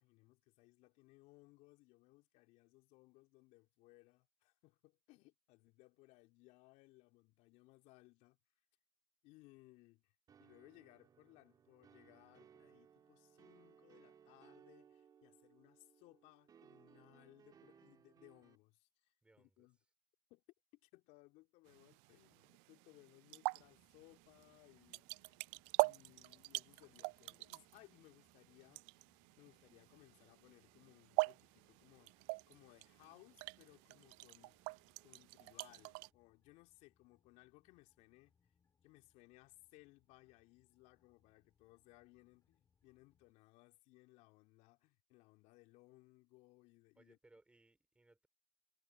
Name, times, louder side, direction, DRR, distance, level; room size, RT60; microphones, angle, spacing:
voice 1, 0.0-8.4 9.2-10.1 10.4-19.8 20.3-20.4 20.8-25.4 25.8-28.9 29.4-38.3 38.8-47.2, left 22 dB, 45° left, 3.2 m, -65 dB
sound 1, 10.3-18.6, right 8 dB, 25° right, 2.7 m, -65 dB
voice 2, 19.2-19.7 47.0-48.3, right 2 dB, 5° right, 4.3 m, -68 dB
sound 2, 21.7-36.1, right 32 dB, 45° right, 0.4 m, -44 dB
sound 3, 23.6-43.3, left 6 dB, 20° left, 4.8 m, -81 dB
hypercardioid pair, 110°, 17 cm